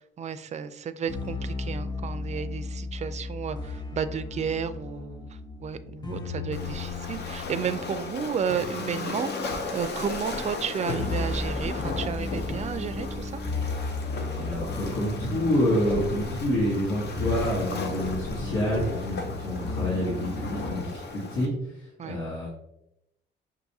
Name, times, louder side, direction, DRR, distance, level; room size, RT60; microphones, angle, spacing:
voice 1, 0.0-5.3 5.6-9.5 9.7-13.4 22.0-22.2, right 7 dB, 35° right, 12 dB, 0.4 m, -32 dB
sound 1, 1.1-20.9, left 3 dB, 20° left, 0.6 m, -35 dB
Waves surf, 6.5-21.5, left 3 dB, 55° left, 0.6 m, -36 dB
voice 2, 14.2-22.5, equal, 80° left, -7 dB, 1.4 m, -28 dB
sound 2, 14.5-14.8 15.9-16.2 17.2-17.7 18.7-19.1, equal, 5° left, 1.1 m, -36 dB
5.7 x 2.6 x 2.7 m, 0.84 s
cardioid pair, 90°, 20 cm